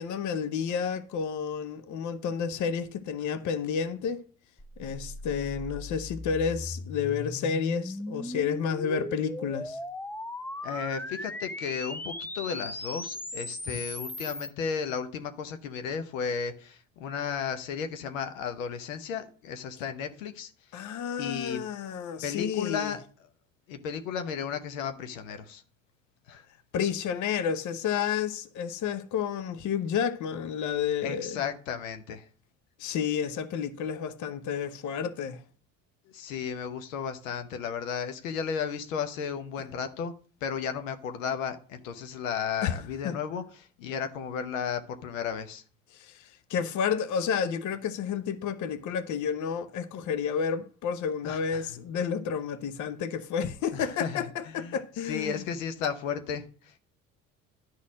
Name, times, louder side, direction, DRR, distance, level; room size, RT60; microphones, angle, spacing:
voice 1, 0.0-4.3 4.8-9.8 20.7-22.9 26.7-31.4 32.8-35.4 42.6-42.8 43.0-43.2 45.9-55.4, left 7 dB, 45° left, 0.9 m, -31 dB
sound 1, 4.6-14.5, left 2 dB, 5° left, 0.5 m, -38 dB
voice 2, 10.6-20.8 21.2-21.6 22.2-23.0 23.7-25.6 26.3-26.5 31.0-32.3 36.1-40.1 40.4-45.6 51.2-51.7 53.7-54.8 55.0-56.8, left 7 dB, 75° left, 1.0 m, -34 dB
11.5 x 4.1 x 6.3 m
hypercardioid pair, 60°, 40 cm